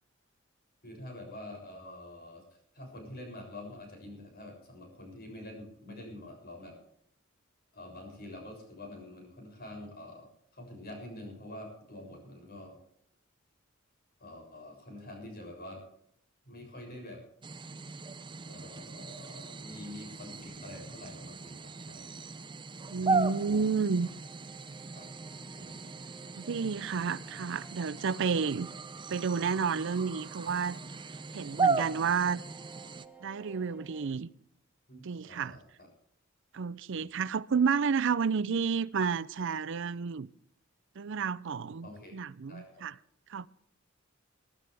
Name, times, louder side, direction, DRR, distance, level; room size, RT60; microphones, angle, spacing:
voice 1, 0.8-2.4 2.7-6.8 7.7-12.8 14.2-15.8 16.5-17.2 18.4-22.1 23.0-23.6 24.9-25.1 25.5-25.9 34.9-35.9 36.9-37.1 41.8-42.2 42.5-42.9, left 1 dB, 50° left, 7.0 m, -46 dB
sound 1, 17.4-33.1, right 4 dB, 25° right, 0.6 m, -37 dB
voice 2, 22.9-24.1 26.4-28.7 29.1-30.8 31.3-32.4 33.2-34.3 35.0-35.6 36.5-40.3 41.0-42.9 43.3-43.5, right 5 dB, 65° right, 0.5 m, -31 dB
sound 2, 24.0-34.1, right 5 dB, 10° right, 1.8 m, -56 dB
22.5 x 12.5 x 3.4 m
head